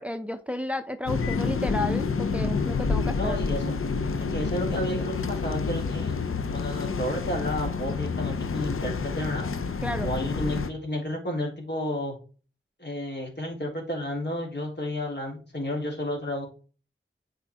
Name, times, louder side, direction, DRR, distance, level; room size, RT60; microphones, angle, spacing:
voice 1, 0.0-3.4 9.8-10.1, left 1 dB, 5° right, 9 dB, 0.6 m, -32 dB
sound 1, 1.1-10.7, left 4 dB, 85° left, 0.6 m, -28 dB
voice 2, 3.1-3.7 4.2-6.2 6.5-9.5 10.0-12.2 12.8-16.5, left 1 dB, 55° left, -1 dB, 3.4 m, -31 dB
8.5 x 4.9 x 3.5 m, 0.37 s
wide cardioid pair, 45°, 21 cm